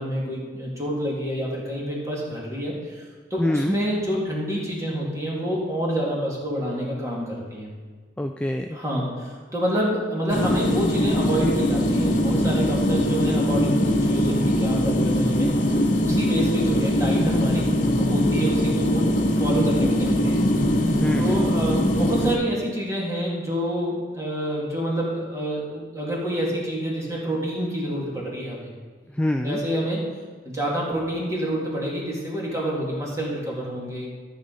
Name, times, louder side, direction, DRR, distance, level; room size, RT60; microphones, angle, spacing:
voice 1, 0.0-3.0 3.3-7.7 8.7-19.1 19.4-20.4 21.2-28.7 29.4-30.0 30.4-34.1, equal, 20° right, -4 dB, 2.3 m, -27 dB
voice 2, 3.4-3.8 8.2-8.8 21.0-21.3 29.1-29.6, left 1 dB, 5° left, 4 dB, 0.3 m, -25 dB
sound 1, 10.3-22.4, left 1 dB, 50° left, 1.0 m, -22 dB
13.5 x 6.3 x 4.0 m, 1.5 s
head